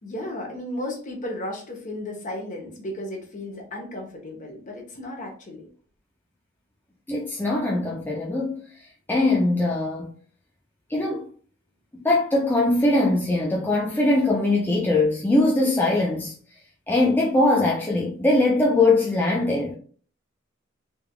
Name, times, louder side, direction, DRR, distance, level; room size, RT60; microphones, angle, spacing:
voice 1, 0.0-5.7, left 1 dB, 40° left, 1.0 m, -34 dB
voice 2, 7.1-8.6 9.1-10.1 10.9-11.3 12.0-16.3 16.9-19.7, left 2 dB, 10° left, 0.4 m, -21 dB
3.4 x 3.3 x 2.3 m
head